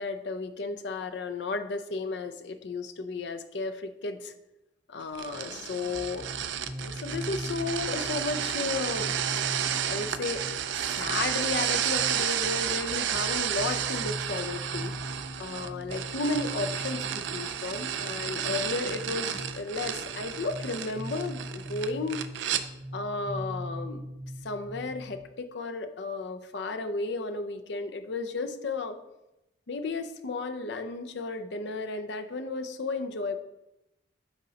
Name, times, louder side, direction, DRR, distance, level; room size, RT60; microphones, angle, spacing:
voice 1, 0.0-4.3 4.9-6.3 6.8-9.1 9.8-10.4 10.9-14.9 15.4-22.3 22.9-24.1 24.4-29.0 29.7-33.4, left 3 dB, 65° left, 8 dB, 0.5 m, -33 dB
sound 1, 5.2-22.6, right 9 dB, 75° right, 0.4 m, -32 dB
sound 2, 5.9-25.2, equal, 15° right, 0.8 m, -41 dB
8.9 x 5.1 x 2.8 m, 0.91 s
head